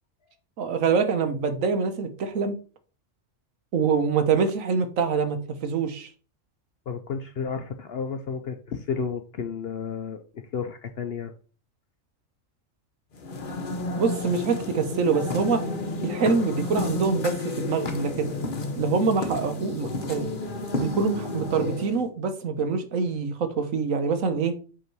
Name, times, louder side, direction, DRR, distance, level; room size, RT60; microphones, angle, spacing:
voice 1, 0.6-2.5 3.7-6.1 14.0-15.6 16.0-18.3 18.8-20.3 20.7-24.6, right 5 dB, 85° right, 1.4 m, -25 dB
voice 2, 6.9-11.3, left 6 dB, 60° left, 0.7 m, -32 dB
sound 1, 13.1-22.1, left 2 dB, 45° left, 1.1 m, -31 dB
8.1 x 3.7 x 4.5 m
omnidirectional pair, 1.3 m